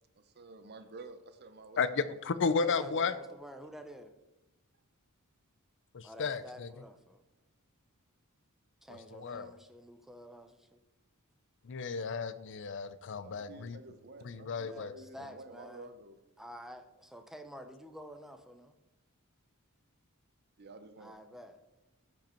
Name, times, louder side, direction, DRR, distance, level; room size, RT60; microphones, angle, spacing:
voice 1, 0.2-3.3 13.2-16.2 20.6-21.2, right 3 dB, 50° right, 0.8 m, -51 dB
voice 2, 1.8-3.1 5.9-6.7 8.9-9.5 11.6-13.8 14.2-14.9, left 5 dB, 60° left, 0.5 m, -33 dB
voice 3, 2.6-4.1 6.0-7.2 8.8-10.8 14.6-15.9 16.4-18.7 21.0-21.6, equal, ahead, 0.7 m, -50 dB
14.0 x 5.3 x 4.5 m
head